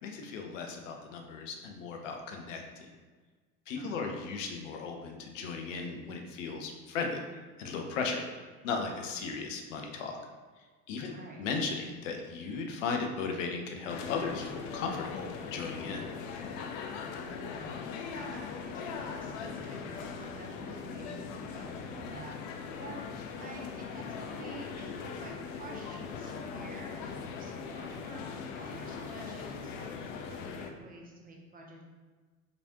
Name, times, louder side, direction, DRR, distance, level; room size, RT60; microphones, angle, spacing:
voice 1, 0.0-2.9 3.7-7.2 7.6-8.3 8.6-10.2 10.6-16.0, left 4 dB, 60° left, 3 dB, 0.7 m, -36 dB
voice 2, 3.8-4.1 11.0-11.4 17.1-22.9 23.4-31.8, right 3 dB, 20° right, 0 dB, 0.6 m, -49 dB
sound 1, 13.9-30.7, left 5 dB, 35° left, 0.4 m, -40 dB
5.0 x 3.2 x 2.8 m, 1.4 s
figure-of-eight pair, 70°, 43 cm